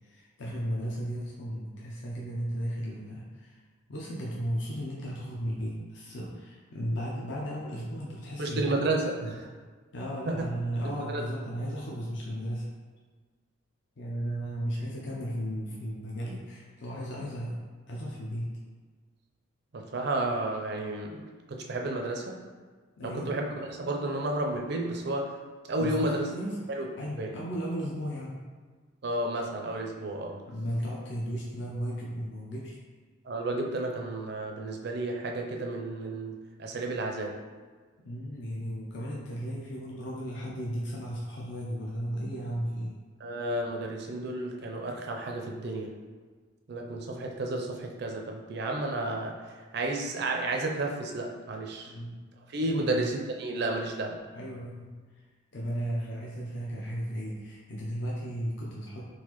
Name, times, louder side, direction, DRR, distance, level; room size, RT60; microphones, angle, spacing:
voice 1, 0.0-3.6 3.9-8.9 9.9-12.7 14.0-17.6 17.9-18.5 23.0-23.3 25.8-26.5 27.0-28.4 30.5-32.8 38.0-43.0 51.8-52.2 52.7-53.0 54.3-55.2 55.5-59.0, equal, 55° left, -5 dB, 0.5 m, -35 dB
voice 2, 8.4-9.5 10.3-10.4 11.0-11.2 19.7-22.4 23.0-25.4 25.7-26.3 26.7-26.9 27.2-27.3 29.0-30.4 33.2-37.4 43.2-46.0 46.7-49.4 49.7-51.9 52.5-54.2, right 2 dB, 50° right, 1 dB, 0.4 m, -32 dB
3.9 x 2.4 x 2.9 m, 1.5 s
head